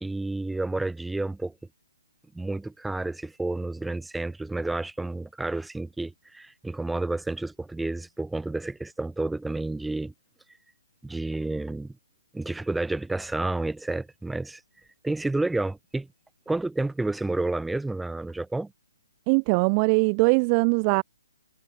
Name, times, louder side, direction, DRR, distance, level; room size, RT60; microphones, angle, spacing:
voice 1, 0.0-1.5 2.3-10.1 11.0-11.9 12.3-14.6 15.0-16.1 16.5-18.7, right 2 dB, 5° right, 1.8 m, -30 dB
voice 2, 19.3-21.0, right 37 dB, 30° right, 0.6 m, -21 dB
figure-of-eight pair, 140°, 0 cm